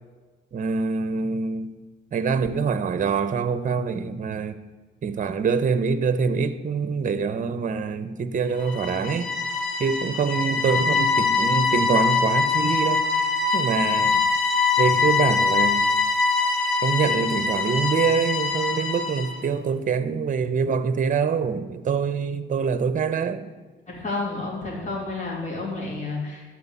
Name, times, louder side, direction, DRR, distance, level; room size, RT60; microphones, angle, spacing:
voice 1, 0.5-1.7 2.1-4.5 5.0-9.3 9.8-13.0 13.5-14.2 14.8-15.9 16.8-23.5, right 5 dB, 40° right, 0.8 m, -25 dB
sound 1, 8.6-19.4, left 4 dB, 80° left, 1.8 m, -23 dB
voice 2, 23.9-26.5, left 3 dB, 40° left, 3.1 m, -30 dB
13.0 x 4.6 x 8.4 m
cardioid pair, 90°, 20 cm